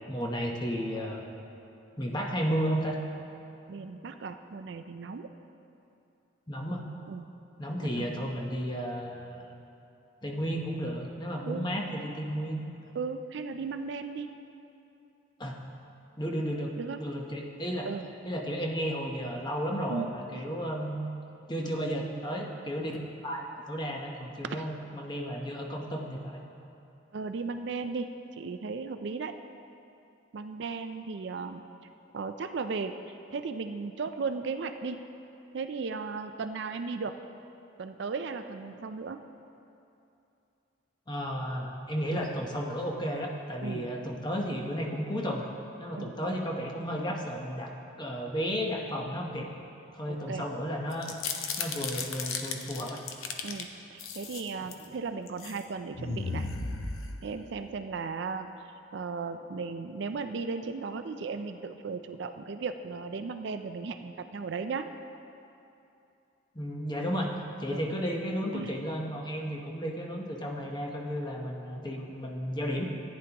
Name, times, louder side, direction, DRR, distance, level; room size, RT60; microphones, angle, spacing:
voice 1, 0.1-1.3 2.0-3.0 6.5-6.8 7.6-9.5 10.2-12.7 15.4-15.6 16.2-17.9 18.2-21.0 21.5-23.0 23.2-26.4 41.1-45.5 45.8-47.7 48.0-49.5 49.9-51.1 51.6-53.0 66.5-67.3 67.6-72.8, equal, 20° left, 0 dB, 0.9 m, -33 dB
voice 2, 3.7-5.3 7.1-7.3 8.0-8.3 11.5-11.6 12.9-14.3 16.8-17.0 17.8-18.0 19.9-20.1 24.4-24.6 27.1-29.3 30.3-31.6 32.1-35.1 35.5-37.2 37.8-39.2 43.6-43.9 45.9-46.2 50.1-50.5 53.4-56.5 57.2-58.5 58.9-64.9 67.7-67.8 68.5-68.8, right 4 dB, 55° right, 8 dB, 0.4 m, -36 dB
sound 1, 50.9-53.6 54.0-54.8 55.3-55.6 55.9-57.6, left 4 dB, 85° left, 0.7 m, -35 dB
14.5 x 9.7 x 2.9 m, 2.7 s
head